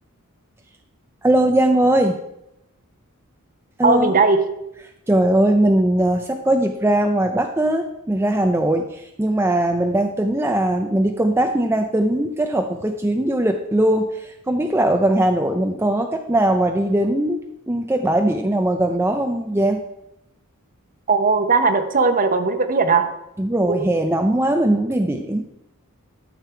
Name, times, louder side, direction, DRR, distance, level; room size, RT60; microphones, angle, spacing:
voice 1, 1.2-2.2 3.8-4.1 5.1-17.4 17.7-19.8 23.4-25.5, right 1 dB, 10° right, 4 dB, 0.5 m, -20 dB
voice 2, 3.8-4.4 21.1-23.1 23.6-23.9, right 4 dB, 40° right, 8 dB, 1.0 m, -18 dB
12.5 x 6.7 x 4.5 m, 0.86 s
head